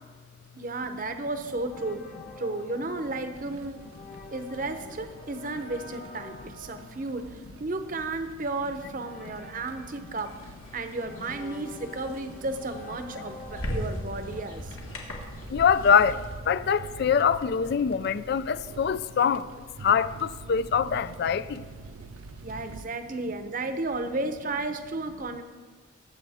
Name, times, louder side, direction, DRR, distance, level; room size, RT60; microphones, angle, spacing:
voice 1, 0.5-2.1 2.4-3.9 4.3-14.8 22.4-25.4, right 2 dB, 40° right, 0.7 m, -33 dB
sound 1, 1.5-15.3, left 2 dB, 35° left, 1.1 m, -48 dB
sound 2, 3.3-22.8, right 4 dB, 90° right, 0.5 m, -47 dB
sound 3, 10.2-16.4, equal, 85° left, 2.1 m, -39 dB
voice 2, 15.5-19.5 19.8-21.6, left 7 dB, 50° left, 0.3 m, -24 dB
20.0 x 7.9 x 3.5 m
head